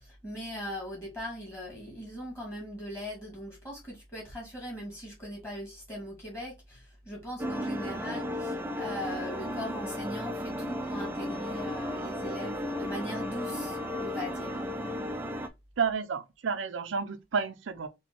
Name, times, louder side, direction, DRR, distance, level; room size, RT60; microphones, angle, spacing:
voice 1, 0.0-14.6, equal, 15° left, 2.1 m, -40 dB
sound 1, 7.4-15.5, left 1 dB, 10° right, 0.4 m, -34 dB
voice 2, 15.8-17.9, right 5 dB, 90° right, 0.6 m, -31 dB
4.3 x 2.3 x 4.3 m
head